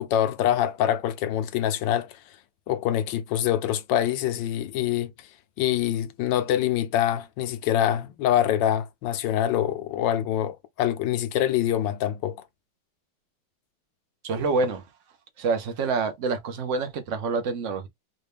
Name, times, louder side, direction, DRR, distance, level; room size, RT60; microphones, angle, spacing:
voice 1, 0.0-2.2 2.7-5.1 5.6-12.4, left 11 dB, 75° left, 1.3 m, -25 dB
voice 2, 14.2-14.8 15.4-17.9, right 4 dB, 65° right, 0.7 m, -27 dB
4.0 x 2.2 x 3.3 m
omnidirectional pair, 2.1 m